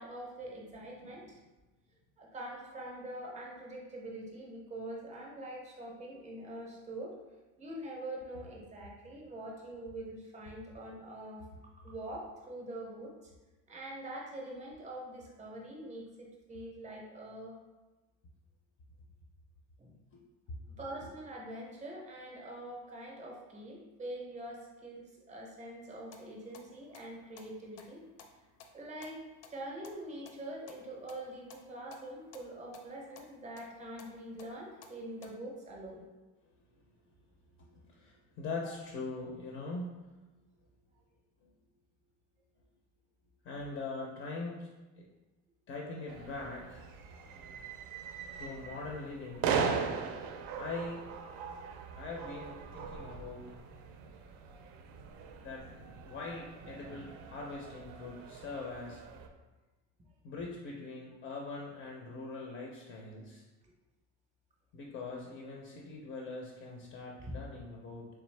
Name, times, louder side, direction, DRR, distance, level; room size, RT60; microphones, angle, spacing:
voice 1, 0.0-1.4 2.2-7.2 7.6-11.4 11.8-13.3 13.7-17.6 19.8-19.9 20.8-28.0 28.7-29.2 29.5-36.0 38.6-38.7, right 1 dB, 20° right, -2 dB, 0.5 m, -44 dB
voice 2, 0.7-1.3 20.1-20.2 20.5-20.6 21.0-21.1 37.6-40.0 41.4-41.5 43.4-44.7 45.0-45.1 45.7-46.9 48.4-49.5 50.6-51.1 51.9-53.5 55.4-55.7 56.1-59.0 60.2-63.4 64.7-68.1, left 3 dB, 35° left, -1 dB, 0.4 m, -42 dB
sound 1, 25.9-35.3, left 5 dB, 85° left, 0.6 m, -58 dB
sound 2, 46.1-59.3, right 6 dB, 75° right, 0.5 m, -40 dB
3.4 x 3.4 x 3.1 m, 1.1 s
cardioid pair, 175°, 35 cm